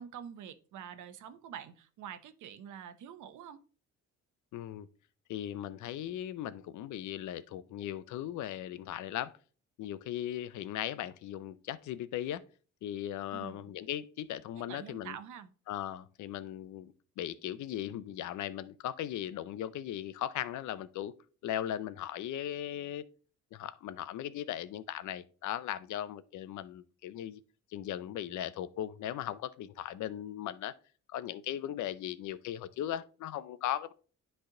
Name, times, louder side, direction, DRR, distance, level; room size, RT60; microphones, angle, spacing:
voice 1, 0.0-3.6 13.3-13.7 14.7-15.5, right 9 dB, 80° right, 0.8 m, -46 dB
voice 2, 4.5-4.9 5.3-9.3 9.8-12.4 12.8-15.2 15.7-21.1 21.4-23.0 23.5-27.4 27.7-30.7 31.1-33.9, left 11 dB, 75° left, 0.6 m, -38 dB
10.0 x 3.4 x 3.8 m
cardioid pair, 90°, 30 cm